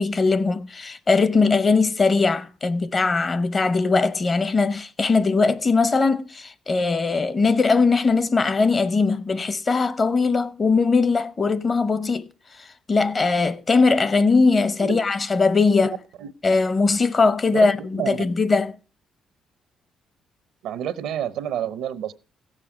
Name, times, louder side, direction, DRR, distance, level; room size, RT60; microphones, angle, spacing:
voice 1, 0.0-12.3 12.6-16.0 16.4-18.7, left 4 dB, 35° left, 0.8 m, -20 dB
voice 2, 15.8-16.3 17.4-18.2 20.6-22.1, right 10 dB, 90° right, 0.7 m, -30 dB
16.0 x 7.5 x 5.0 m
cardioid pair, 90°, 0 cm